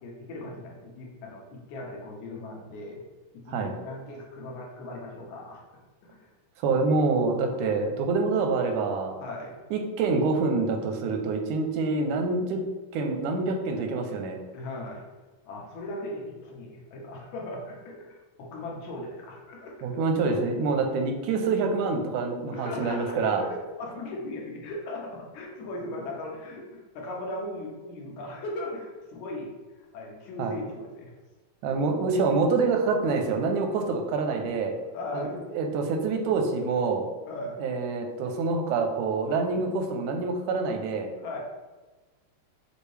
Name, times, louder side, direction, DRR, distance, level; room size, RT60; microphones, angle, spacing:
voice 1, 0.0-3.0 3.3-5.6 6.0-6.3 9.2-9.6 14.5-15.0 15.4-19.8 22.5-29.5 29.9-31.1 34.3-34.4 34.9-35.4 37.3-37.6 41.2-41.4, left 1 dB, 80° left, -1 dB, 2.2 m, -38 dB
voice 2, 6.6-9.1 9.7-12.6 12.9-14.4 19.8-23.4 30.4-30.6 31.6-34.7 35.1-37.1 37.6-41.1, right 4 dB, 90° right, 4 dB, 2.1 m, -26 dB
6.4 x 2.6 x 3.2 m, 1.2 s
omnidirectional pair, 3.4 m